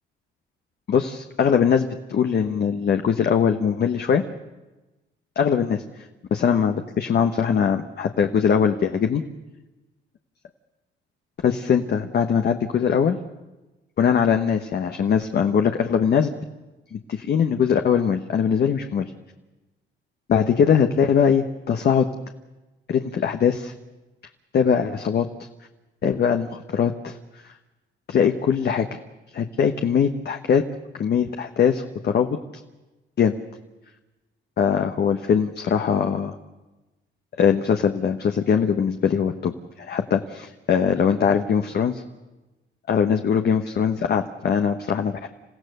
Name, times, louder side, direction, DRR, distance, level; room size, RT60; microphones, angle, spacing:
voice 1, 0.9-4.2 5.4-5.8 6.3-9.2 11.4-13.2 14.0-16.3 16.9-19.1 20.3-22.1 22.9-23.7 24.5-25.3 26.0-27.2 28.1-28.9 29.3-30.6 30.9-32.3 33.2-33.3 34.6-36.3 37.4-42.0 42.9-45.2, left 7 dB, 55° left, 5 dB, 1.2 m, -21 dB
28.0 x 15.5 x 6.8 m, 1.1 s
cardioid pair, 90°, 20 cm